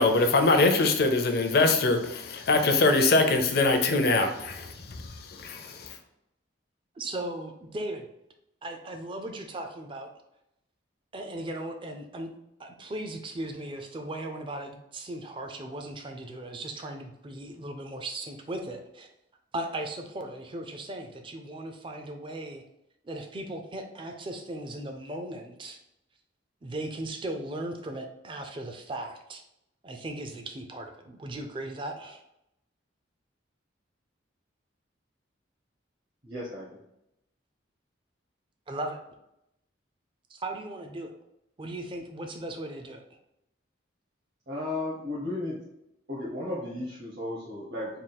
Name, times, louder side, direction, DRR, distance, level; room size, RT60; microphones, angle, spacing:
voice 1, 0.0-5.9, left 3 dB, 50° left, 5 dB, 0.5 m, -23 dB
voice 2, 7.0-8.1 8.6-10.1 11.1-12.3 12.6-19.1 19.5-22.6 23.0-25.8 26.6-29.4 29.8-32.2 38.7-39.0 40.3-41.1 41.6-43.0, right 1 dB, 25° right, 5 dB, 0.4 m, -37 dB
voice 3, 36.2-36.8 44.5-45.7 46.1-48.0, left 2 dB, 55° right, -7 dB, 1.0 m, -34 dB
3.6 x 2.3 x 4.0 m, 0.84 s
head